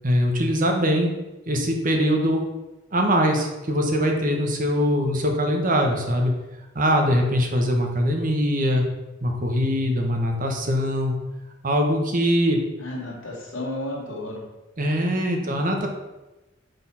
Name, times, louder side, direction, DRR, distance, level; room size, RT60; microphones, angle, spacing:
voice 1, 0.0-1.1 1.5-2.4 2.9-6.3 6.7-8.9 9.2-11.1 11.6-12.6 14.8-15.9, equal, 45° right, 2 dB, 1.3 m, -22 dB
voice 2, 12.8-14.5 15.4-15.6, left 1 dB, 85° left, -2 dB, 2.4 m, -33 dB
6.4 x 5.0 x 5.7 m, 1.0 s
head